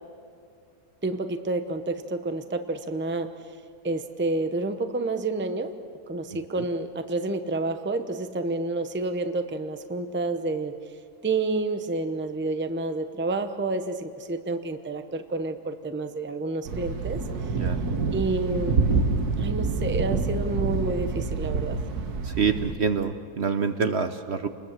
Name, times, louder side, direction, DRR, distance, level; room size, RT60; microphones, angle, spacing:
voice 1, 1.0-3.3 3.8-5.7 6.1-10.7 11.2-17.2 18.1-18.8 19.4-21.8, right 2 dB, 10° right, 8 dB, 0.7 m, -29 dB
Thunder, 16.7-22.7, right 4 dB, 75° right, 1.8 m, -27 dB
voice 2, 22.2-24.5, right 6 dB, 50° right, 9 dB, 1.0 m, -26 dB
29.0 x 21.0 x 7.5 m, 2.4 s
omnidirectional pair, 1.7 m